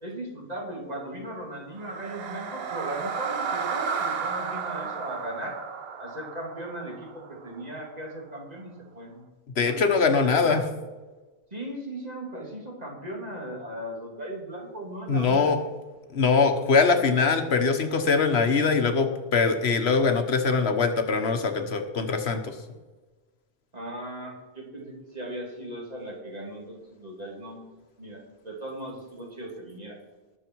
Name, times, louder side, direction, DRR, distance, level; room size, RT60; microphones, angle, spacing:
voice 1, 0.0-5.6 6.0-9.2 9.6-9.8 10.2-10.6 11.5-15.7 23.7-27.6 28.0-30.0, right 1 dB, 40° right, -1 dB, 2.9 m, -37 dB
sound 1, 1.7-7.9, right 5 dB, 70° right, 1.1 m, -33 dB
voice 2, 9.6-10.6 15.1-15.6 16.1-22.5, left 4 dB, 80° left, 7 dB, 1.4 m, -22 dB
19.5 x 7.0 x 4.6 m, 1.2 s
omnidirectional pair, 1.1 m